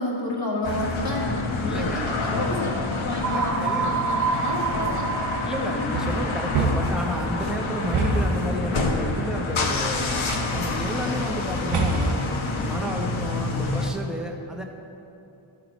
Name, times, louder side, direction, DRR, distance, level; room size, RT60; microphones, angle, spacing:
voice 1, 0.0-5.1, left 1 dB, 55° left, -7 dB, 1.3 m, -30 dB
sound 1, 0.6-13.9, left 3 dB, 75° left, 0.9 m, -28 dB
voice 2, 1.7-2.1 3.2-3.9 5.4-12.2 12.5-14.6, equal, ahead, 1 dB, 0.8 m, -32 dB
sound 2, 3.2-7.1, right 5 dB, 35° right, 0.6 m, -28 dB
sound 3, 5.9-7.1 7.9-8.5 10.1-10.6 11.7-12.3, right 3 dB, 85° right, 1.0 m, -25 dB
13.0 x 4.7 x 5.1 m, 2.8 s
wide cardioid pair, 105°, 48 cm